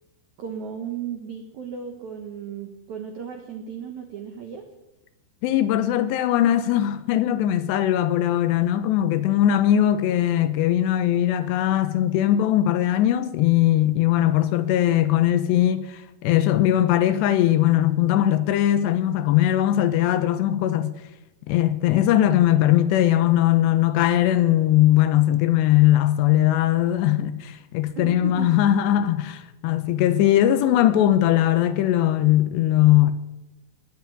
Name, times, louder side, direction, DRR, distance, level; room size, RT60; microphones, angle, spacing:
voice 1, 0.4-4.6 28.0-28.6, right 7 dB, 75° right, 1.7 m, -35 dB
voice 2, 5.4-20.9 21.5-33.1, left 12 dB, 80° left, 2.7 m, -20 dB
19.0 x 7.4 x 9.1 m
omnidirectional pair, 5.3 m